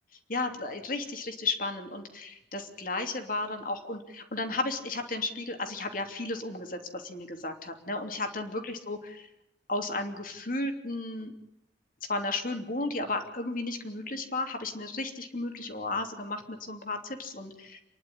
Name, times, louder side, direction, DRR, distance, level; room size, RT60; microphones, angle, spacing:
voice 1, 0.3-9.2 9.7-11.3 12.1-17.8, left 2 dB, 50° left, 5 dB, 3.0 m, -34 dB
29.0 x 11.5 x 9.9 m, 0.88 s
head